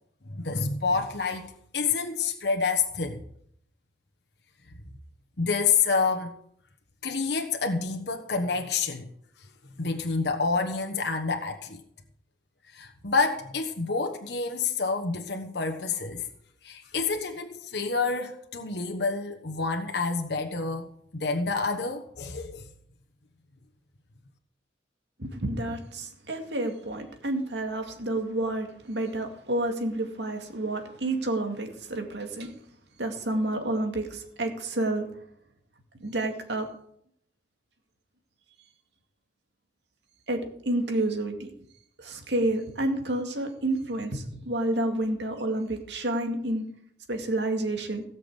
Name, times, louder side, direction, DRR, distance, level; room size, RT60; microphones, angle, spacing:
voice 1, 0.3-3.2 5.4-6.3 7.0-9.1 9.8-11.8 12.7-16.3 16.6-20.9 21.1-22.6, left 4 dB, 65° left, 4 dB, 1.2 m, -28 dB
voice 2, 25.2-32.5 33.0-35.1 36.0-36.7 40.3-40.4 40.7-41.5 42.0-46.6 47.1-48.0, right 1 dB, 75° right, 4 dB, 2.3 m, -29 dB
17.0 x 6.0 x 8.2 m, 0.69 s
head